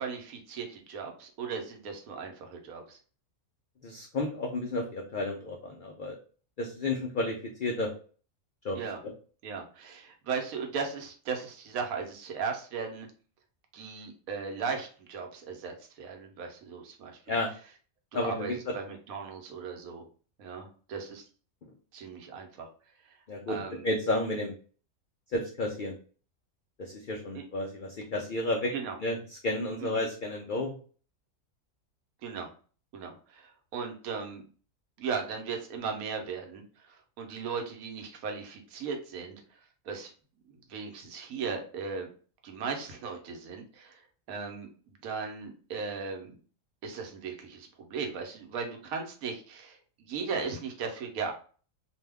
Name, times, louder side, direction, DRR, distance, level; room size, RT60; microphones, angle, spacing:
voice 1, 0.0-3.0 8.7-9.0 9.4-13.1 13.7-17.4 18.1-20.0 20.4-21.2 21.9-22.7 23.1-23.2 23.5-23.8 27.3-27.4 28.7-29.0 29.8-30.1 32.2-32.5 32.9-34.4 35.0-39.4 39.9-40.1 40.5-42.1 42.4-44.0 44.3-44.7 45.0-46.4 46.8-51.3, right 5 dB, 80° right, 4 dB, 1.1 m, -37 dB
voice 2, 3.8-6.2 6.6-7.9 8.6-8.8 9.0-9.1 17.3-17.5 18.1-18.7 21.6-21.7 23.3-24.5 25.3-26.0 26.8-28.7 29.0-30.7, left 2 dB, 75° left, 0 dB, 0.4 m, -32 dB
2.7 x 2.2 x 3.3 m, 0.40 s
omnidirectional pair, 1.5 m